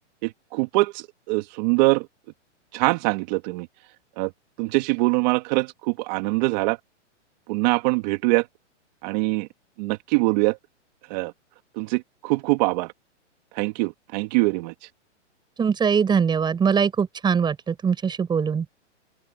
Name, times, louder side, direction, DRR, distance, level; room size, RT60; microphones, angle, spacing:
voice 1, 0.2-2.1 2.7-3.7 4.2-4.3 4.6-6.8 7.5-8.5 9.0-9.5 9.8-10.6 11.1-11.3 11.8-12.9 13.5-14.7, right 24 dB, 35° right, 2.7 m, -23 dB
voice 2, 15.6-18.6, right 6 dB, 10° right, 7.7 m, -22 dB
open air
hypercardioid pair, 150°, 36 cm